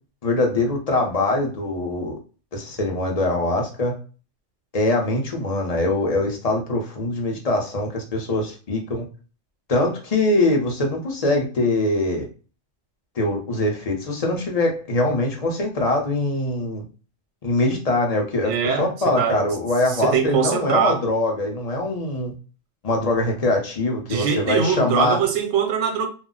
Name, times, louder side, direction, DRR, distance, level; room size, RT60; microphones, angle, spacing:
voice 1, 0.2-2.2 2.5-4.0 4.7-9.0 9.7-12.3 13.2-16.8 17.4-22.3 22.8-25.2, left 2 dB, 40° left, 0.7 m, -23 dB
voice 2, 18.4-19.5 19.9-21.0 24.1-26.1, right 7 dB, 85° right, 0.9 m, -22 dB
2.4 x 2.0 x 3.7 m
omnidirectional pair, 1.2 m